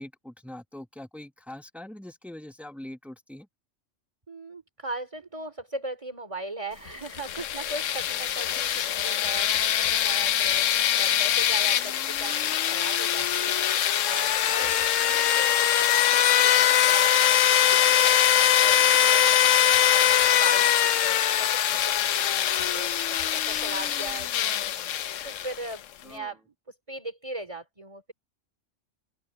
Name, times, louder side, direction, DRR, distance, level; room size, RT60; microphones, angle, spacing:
voice 1, 0.0-3.5 14.8-14.9 26.0-26.3, left 1 dB, ahead, 1.1 m, -43 dB
voice 2, 4.3-26.4 26.7-28.1, right 2 dB, 25° right, 3.0 m, -39 dB
sound 1, 7.1-25.7, left 10 dB, 85° left, 1.1 m, -23 dB
open air
omnidirectional pair, 1.3 m